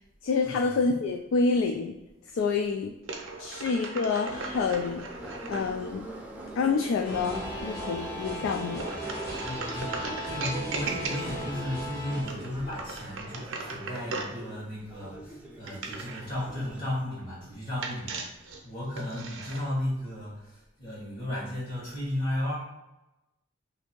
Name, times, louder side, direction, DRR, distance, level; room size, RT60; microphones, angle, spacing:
voice 1, 0.2-2.0 2.3-3.0 3.4-5.1 5.5-6.1 6.6-8.9, left 4 dB, 80° left, 4 dB, 0.3 m, -27 dB
sound 1, 3.0-5.7 8.7-11.5 12.1-14.4 15.6-16.3 17.8-19.6, right 3 dB, 75° right, 0.6 m, -38 dB
Subway metro underground, 4.3-16.8, right 1 dB, 5° right, 0.5 m, -43 dB
sound 2, 7.0-12.2, equal, 55° left, 1.4 m, -37 dB
voice 2, 9.4-18.2 18.6-22.5, left 1 dB, 40° left, -11 dB, 1.3 m, -34 dB
2.7 x 2.6 x 4.3 m, 0.97 s
head